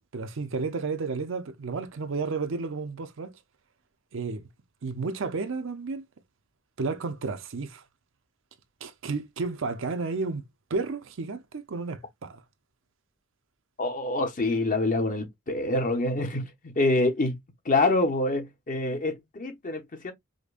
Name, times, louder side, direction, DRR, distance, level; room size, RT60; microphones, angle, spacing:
voice 1, 0.1-3.4 4.1-4.5 4.8-6.0 6.8-7.8 8.8-10.4 10.7-12.4, right 4 dB, 65° right, 0.6 m, -32 dB
voice 2, 13.8-17.4 17.6-20.1, left 2 dB, 40° left, 0.8 m, -26 dB
5.0 x 2.1 x 2.4 m
head